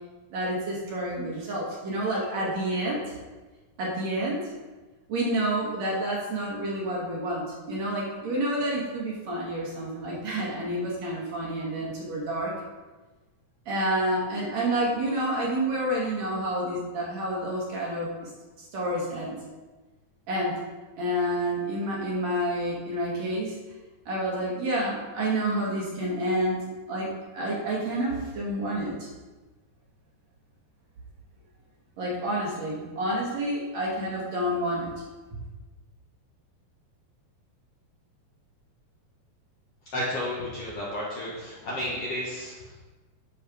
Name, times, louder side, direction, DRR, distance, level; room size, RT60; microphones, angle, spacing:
voice 1, 0.3-3.0 3.8-4.4 5.1-12.5 13.7-18.3 18.6-19.4 20.3-20.5 21.0-23.5 24.1-26.6 26.9-27.1 27.3-29.1 32.0-34.9, right 1 dB, 55° right, -5 dB, 2.6 m, -29 dB
voice 2, 39.9-42.8, left 1 dB, 60° left, -6 dB, 1.7 m, -32 dB
10.5 x 4.6 x 4.9 m, 1.2 s
omnidirectional pair, 4.2 m